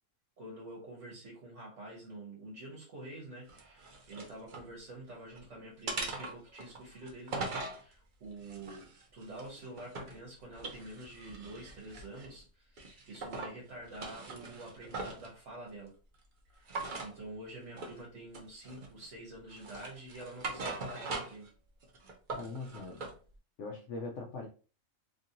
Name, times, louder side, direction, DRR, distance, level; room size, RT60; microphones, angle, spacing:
voice 1, 0.4-15.9 16.5-21.5, right 1 dB, 65° right, -2 dB, 1.3 m, -47 dB
sound 1, 3.5-4.7 5.1-5.4 5.9-7.8 8.4-10.2 10.5-12.4 12.8-13.5 13.9-15.3 16.7-17.1 17.8-18.0 18.3-19.0 19.5-21.5 21.8-23.1, right 3 dB, 50° right, 0.7 m, -41 dB
voice 2, 22.3-23.0 23.6-24.5, left 3 dB, 65° left, 1 dB, 0.8 m, -41 dB
2.9 x 2.6 x 2.7 m, 0.36 s
omnidirectional pair, 1.4 m